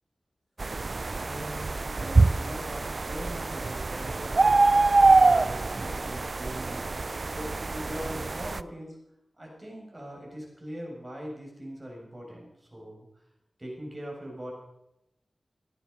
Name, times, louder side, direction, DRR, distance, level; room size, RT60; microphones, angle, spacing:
sound 1, 0.6-8.6, right 3 dB, 50° right, 0.5 m, -24 dB
voice 1, 1.2-4.7 5.1-6.8 7.3-9.0 9.3-13.1 13.6-14.5, equal, 30° right, -1 dB, 6.8 m, -41 dB
16.5 x 11.5 x 5.4 m, 0.85 s
wide cardioid pair, 75°, 0 cm